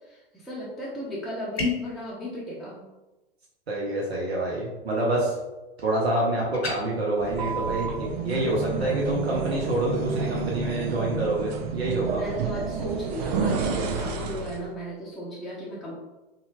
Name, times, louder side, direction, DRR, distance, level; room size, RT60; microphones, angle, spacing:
voice 1, 0.0-2.9 8.7-9.0 12.1-16.0, equal, ahead, -8 dB, 0.6 m, -36 dB
sound 1, 1.6-2.0 6.5-6.8, left 4 dB, 90° left, 0.7 m, -28 dB
voice 2, 3.7-5.3 5.8-12.2, right 1 dB, 85° right, -4 dB, 0.7 m, -27 dB
sound 2, 7.2-14.7, right 5 dB, 45° right, 0.4 m, -30 dB
2.7 x 2.3 x 2.8 m, 1.1 s
figure-of-eight pair, 100°, 30 cm